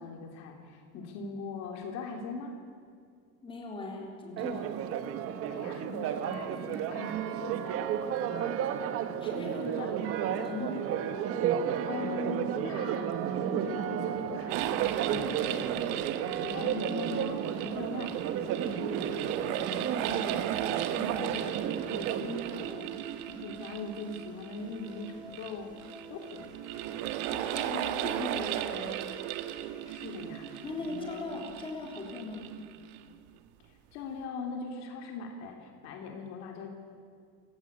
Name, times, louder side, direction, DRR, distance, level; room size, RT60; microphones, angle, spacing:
voice 1, 0.0-2.6 5.5-9.9 10.5-10.6 11.9-18.2 18.6-25.7 26.1-26.5 29.9-31.5 33.7-36.7, left 3 dB, 55° left, 3 dB, 3.2 m, -41 dB
voice 2, 3.4-4.7 9.2-9.7 10.3-10.8 27.2-29.1 30.6-32.5, left 3 dB, 15° left, 0 dB, 3.8 m, -39 dB
Church bell, 4.4-22.7, right 9 dB, 45° right, 1.3 m, -33 dB
sound 1, 14.5-33.1, right 12 dB, 80° right, 1.5 m, -36 dB
sound 2, 16.8-30.8, right 4 dB, 15° right, 4.9 m, -49 dB
28.0 x 17.0 x 8.7 m, 2.2 s
cardioid pair, 175°, 32 cm